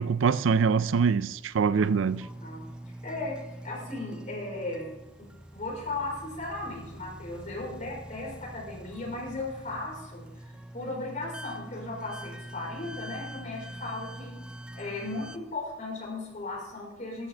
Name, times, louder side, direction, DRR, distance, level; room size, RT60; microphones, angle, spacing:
voice 1, 0.0-2.3, right 5 dB, 85° right, 0.4 m, -24 dB
sound 1, 1.8-15.4, right 1 dB, 5° right, 0.3 m, -44 dB
voice 2, 3.0-3.4 3.6-4.9 5.2-5.3 5.5-14.4 14.7-17.3, left 2 dB, 40° left, 4.5 m, -36 dB
13.5 x 11.5 x 3.3 m
head